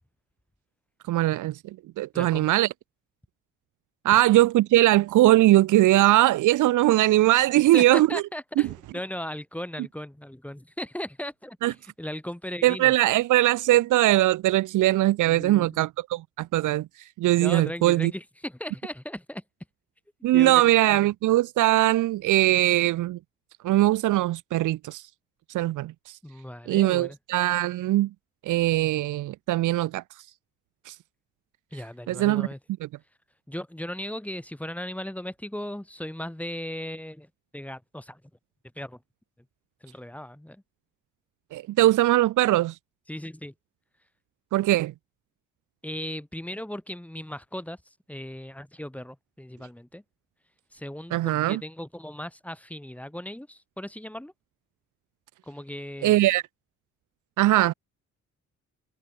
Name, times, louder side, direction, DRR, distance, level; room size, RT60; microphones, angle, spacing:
voice 1, 1.1-1.6 2.0-2.7 4.0-8.2 11.6-11.7 12.6-16.9 17.2-18.1 20.2-23.2 23.6-25.0 25.5-26.2 26.7-28.1 28.5-30.0 30.9-31.0 32.1-32.5 41.5-42.8 44.5-44.9 51.1-51.6 56.0-56.4 57.4-57.7, right 16 dB, 80° right, 1.0 m, -21 dB
voice 2, 2.1-2.5 4.1-4.2 7.5-12.9 15.3-15.8 17.4-19.4 20.3-20.6 20.9-21.0 26.2-27.2 31.7-32.6 33.5-38.2 38.7-39.0 39.8-40.6 43.1-43.5 45.8-47.8 48.1-50.0 50.7-54.3 55.5-56.2, left 1 dB, 5° left, 6.2 m, -37 dB
cardioid pair, 90°, 30 cm